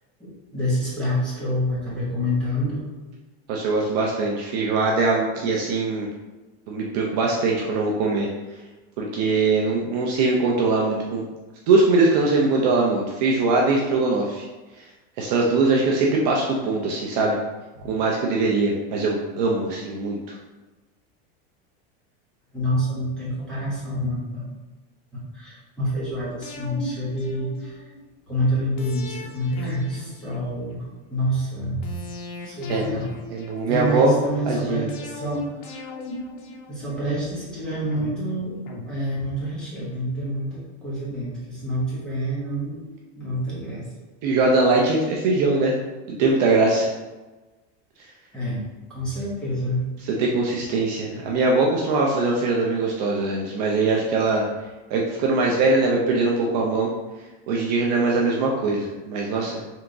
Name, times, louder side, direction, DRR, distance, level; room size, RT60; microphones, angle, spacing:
voice 1, 0.2-2.9 17.8-17.9 22.5-24.5 25.1-27.8 28.3-30.8 31.1-32.0 32.4-33.2 33.7-35.5 36.7-38.6 38.9-43.9 48.3-48.6 48.9-49.8, equal, 5° left, -9 dB, 0.9 m, -27 dB
voice 2, 3.5-6.1 6.7-8.3 9.0-11.3 11.7-14.5 14.7-14.8 15.2-17.4 17.8-20.4 32.7-32.9 33.3-34.2 34.5-34.9 44.2-45.8 46.1-46.9 50.0-54.5 54.9-56.9 57.5-59.6, right 3 dB, 45° right, -2 dB, 0.5 m, -21 dB
sound 1, 26.4-28.0 28.8-30.9 31.8-34.0 34.9-37.3 37.9-39.6 39.9-40.0, left 2 dB, 55° left, 0.8 m, -37 dB
3.5 x 2.8 x 3.7 m, 1.2 s
supercardioid pair, 175°, 31 cm